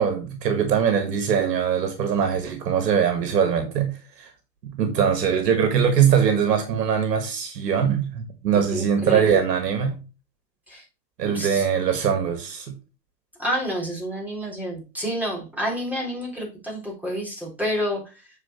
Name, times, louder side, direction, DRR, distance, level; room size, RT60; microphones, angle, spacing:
voice 1, 0.0-4.3 4.7-10.0 11.2-12.7, right 7 dB, 70° right, 1.8 m, -22 dB
voice 2, 8.5-9.3 10.7-10.8 11.2-11.7 13.4-18.2, equal, 5° right, 3.7 m, -29 dB
7.8 x 4.7 x 4.3 m
hypercardioid pair, 115°, 49 cm